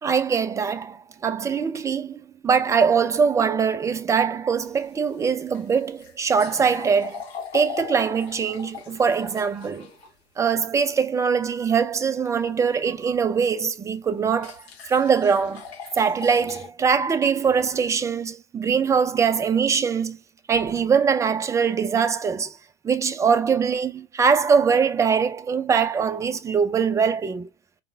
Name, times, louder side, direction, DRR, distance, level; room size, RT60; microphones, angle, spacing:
voice 1, 0.0-7.3 7.5-9.9 10.4-14.6 14.9-15.6 16.0-20.2 20.5-22.5 22.8-27.5, right 6 dB, 10° right, 0.4 m, -22 dB
sound 1, 4.5-10.1 13.2-13.3 14.4-16.7, left 7 dB, 65° left, 1.8 m, -39 dB
4.9 x 3.7 x 2.3 m
figure-of-eight pair, 85°, 33 cm